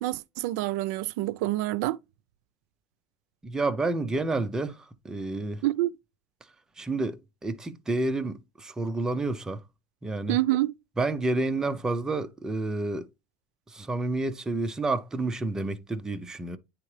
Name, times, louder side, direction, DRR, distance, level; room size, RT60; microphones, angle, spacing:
voice 1, 0.0-2.0 5.6-5.9 10.3-10.7, right 16 dB, 70° right, 0.4 m, -27 dB
voice 2, 3.4-5.6 6.8-9.6 10.0-10.4 11.0-13.1 13.7-16.6, right 2 dB, 5° right, 0.4 m, -29 dB
9.5 x 3.6 x 3.2 m
cardioid pair, 175°, 9 cm